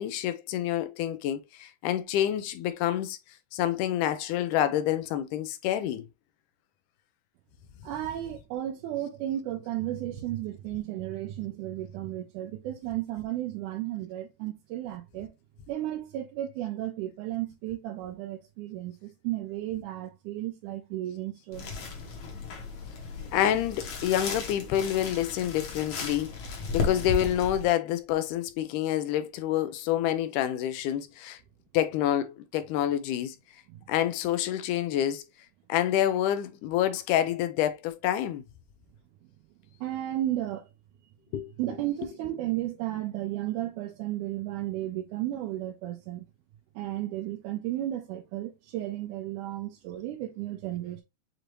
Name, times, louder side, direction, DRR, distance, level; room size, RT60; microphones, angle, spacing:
voice 1, 0.0-3.2 3.5-6.1 23.3-31.4 31.7-33.4 33.9-35.3 35.7-38.4 41.3-41.5, left 11 dB, 80° left, 2.1 m, -28 dB
voice 2, 7.8-15.3 15.7-21.8 33.7-33.8 39.8-40.7 41.6-46.3 46.8-51.0, right 14 dB, 80° right, 2.0 m, -34 dB
sound 1, 21.5-27.7, left 4 dB, 60° left, 2.1 m, -35 dB
6.7 x 2.6 x 3.0 m
omnidirectional pair, 3.8 m